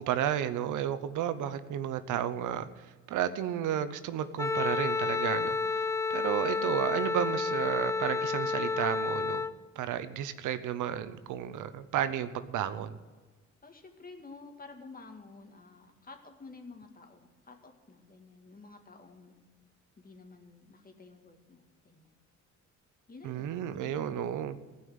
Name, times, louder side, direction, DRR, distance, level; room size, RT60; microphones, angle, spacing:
voice 1, 0.0-9.4 9.8-13.0 23.2-24.7, right 10 dB, 80° right, 12 dB, 0.8 m, -32 dB
Wind instrument woodwind instrument, 4.4-9.5, left 4 dB, 10° left, 0.4 m, -30 dB
voice 2, 13.6-19.4 20.0-22.1 23.1-24.4, left 3 dB, 30° left, 4 dB, 2.1 m, -51 dB
16.0 x 5.6 x 9.6 m, 1.3 s
cardioid pair, 90°, 30 cm